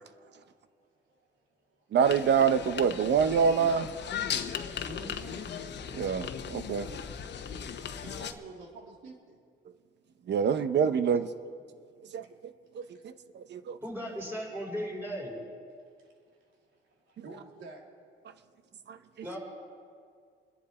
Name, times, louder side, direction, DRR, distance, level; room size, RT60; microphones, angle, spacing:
voice 1, 1.9-3.9 5.9-6.9 10.3-11.3 12.1-12.2 12.8-13.8 18.9-19.0, right 7 dB, 60° right, 0.9 m, -26 dB
sound 1, 2.0-8.3, left 7 dB, 60° left, 1.1 m, -37 dB
voice 2, 4.9-5.5 8.0-9.4 16.0-16.1 17.1-17.8, right 3 dB, 80° right, 3.0 m, -47 dB
voice 3, 13.8-15.3 19.2-19.4, equal, 10° right, 5.3 m, -36 dB
27.0 x 10.5 x 4.3 m
cardioid pair, 90°, 20 cm